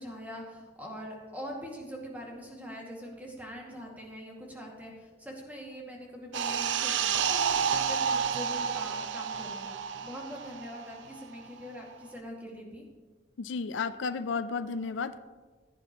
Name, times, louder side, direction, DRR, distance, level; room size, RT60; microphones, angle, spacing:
voice 1, 0.0-12.9, equal, 10° right, -2 dB, 2.1 m, -43 dB
sound 1, 6.3-11.4 11.7-11.9, right 7 dB, 80° right, 0.5 m, -30 dB
voice 2, 13.4-15.2, left 5 dB, 85° left, 12 dB, 0.5 m, -33 dB
15.5 x 10.5 x 3.0 m, 1.4 s
head